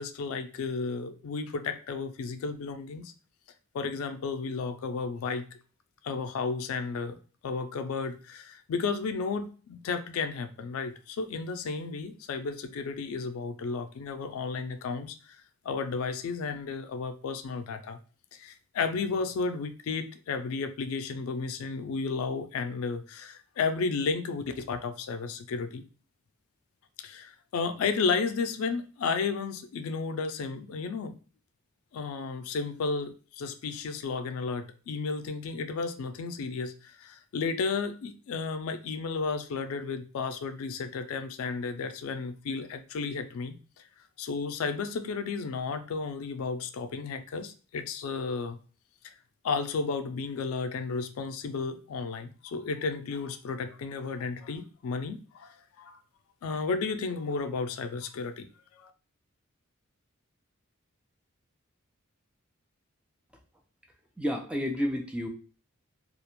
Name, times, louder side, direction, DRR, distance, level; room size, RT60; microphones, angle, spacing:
voice 1, 0.0-3.1 3.7-5.5 6.0-7.2 7.4-15.4 15.7-18.0 18.4-25.8 27.0-31.2 31.9-43.6 44.2-48.6 49.4-56.0 56.4-58.5 58.7-58.9, left 4 dB, 90° left, 9 dB, 0.3 m, -33 dB
voice 2, 64.2-65.3, equal, 5° right, 2 dB, 0.3 m, -30 dB
2.4 x 2.1 x 2.9 m, 0.37 s
head